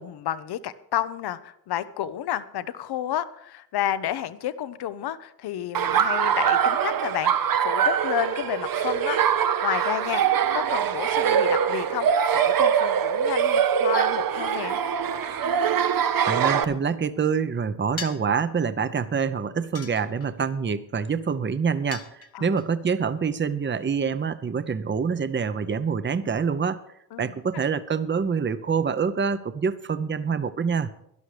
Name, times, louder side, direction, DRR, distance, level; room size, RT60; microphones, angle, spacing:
voice 1, 0.0-9.2 9.6-12.1 12.3-14.8 22.3-22.6 27.1-27.3, left 11 dB, 75° left, 15 dB, 0.8 m, -31 dB
Laughter, 5.7-16.6, right 8 dB, 60° right, 0.9 m, -23 dB
voice 2, 16.3-26.8 27.2-30.9, right 6 dB, 30° right, 13 dB, 0.8 m, -26 dB
sound 1, 18.0-18.4 19.7-20.5 21.9-22.6, left 6 dB, 40° left, 1.3 m, -39 dB
12.0 x 11.5 x 5.0 m, 0.76 s
cardioid pair, 65°, 39 cm